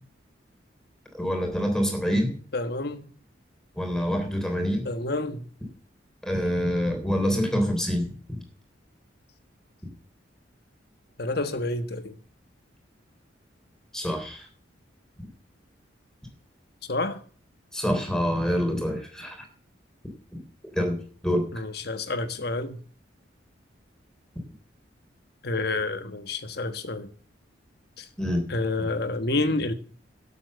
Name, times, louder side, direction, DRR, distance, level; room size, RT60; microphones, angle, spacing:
voice 1, 1.1-2.3 3.8-4.9 6.2-8.4 13.9-14.5 17.7-19.4 20.7-21.0 21.2-21.4 28.2-28.4, equal, 5° left, 3.6 m, -26 dB
voice 2, 2.5-3.1 4.8-5.5 11.2-12.2 16.9-17.2 21.5-22.8 25.4-27.1 28.0-28.1 28.5-29.7, left 2 dB, 55° left, 1.4 m, -29 dB
12.5 x 7.7 x 7.8 m
head